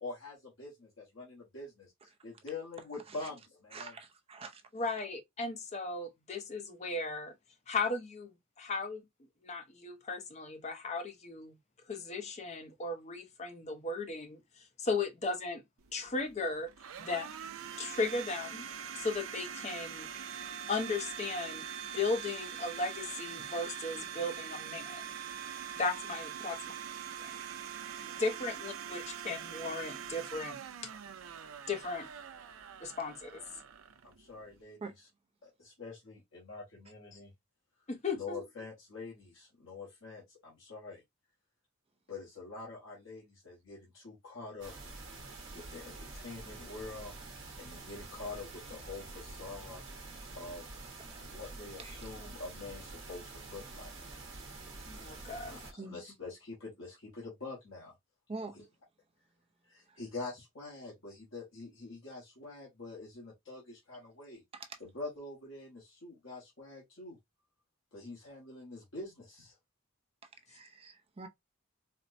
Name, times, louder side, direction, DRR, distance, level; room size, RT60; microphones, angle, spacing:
voice 1, 0.0-3.9 34.0-34.8 35.4-37.3 38.1-41.0 42.1-44.7 45.5-47.1 47.6-49.8 50.4-50.7 51.2-54.2 55.3-57.9 58.4-58.6 59.7-64.4 64.8-67.2 67.9-69.6, left 3 dB, 75° left, 1.1 m, -45 dB
voice 2, 3.7-4.6 28.0-28.1 34.8-34.9 51.0-51.2 51.8-52.0 55.8-56.0 58.3-58.6 59.9-60.0 64.5-64.8 70.3-71.3, right 3 dB, 30° right, 0.5 m, -46 dB
voice 3, 4.7-7.3 7.7-8.3 8.6-9.0 9.4-11.5 11.9-15.6 15.9-16.7 17.0-17.3 17.8-18.6 18.9-20.1 20.7-21.7 21.9-25.0 25.8-26.6 27.2-27.3 28.0-30.6 31.7-32.1 32.8-33.4 37.9-38.4 54.9-55.6, left 3 dB, 35° left, 0.6 m, -36 dB
Domestic sounds home sounds, 15.8-34.6, right 8 dB, 80° right, 0.4 m, -43 dB
sound 1, 44.6-55.7, right 3 dB, 60° right, 1.0 m, -47 dB
4.2 x 2.1 x 2.5 m
head